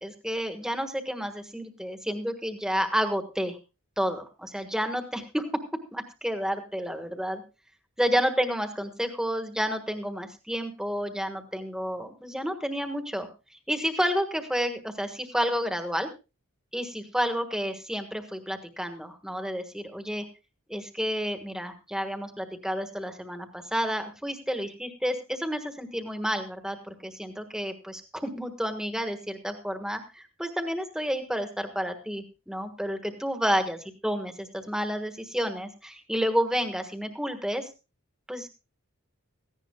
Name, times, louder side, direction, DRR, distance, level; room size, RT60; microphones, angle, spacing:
voice 1, 0.0-3.6 4.0-5.6 5.9-7.4 8.0-16.1 16.7-20.3 20.7-37.7 38.3-38.5, equal, 5° right, 6 dB, 1.4 m, -30 dB
17.0 x 15.5 x 2.3 m, 0.29 s
head